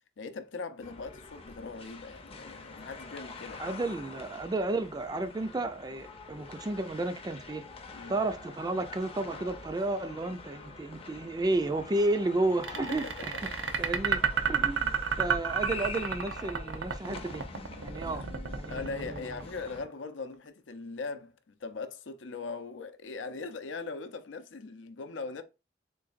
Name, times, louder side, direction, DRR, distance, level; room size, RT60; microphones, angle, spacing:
voice 1, 0.2-3.6 7.9-8.2 13.0-13.3 13.7-13.9 18.1-18.2 18.7-25.4, left 4 dB, 85° left, 0.5 m, -40 dB
sound 1, 0.8-19.8, left 4 dB, 30° left, 0.6 m, -46 dB
voice 2, 3.6-7.6 8.1-13.5 13.8-14.2 14.5-17.4 17.8-18.2 18.6-19.2, right 2 dB, 20° right, 0.4 m, -32 dB
sound 2, 12.6-19.8, right 6 dB, 85° right, 0.6 m, -31 dB
3.9 x 3.1 x 2.5 m
head